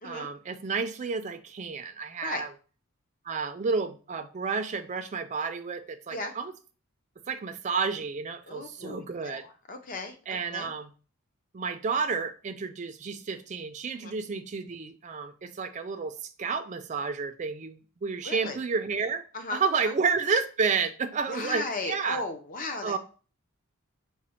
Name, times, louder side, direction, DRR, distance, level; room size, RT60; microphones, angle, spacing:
voice 1, 0.0-2.5 3.3-6.5 7.3-9.5 10.3-10.9 11.5-16.1 16.4-19.2 19.5-22.2 22.8-23.0, right 5 dB, 30° right, 0.3 m, -31 dB
voice 2, 8.5-10.7 14.0-14.2 18.2-18.6 19.3-19.9 21.3-23.0, left 2 dB, 35° left, 0.6 m, -36 dB
5.0 x 2.1 x 4.2 m
head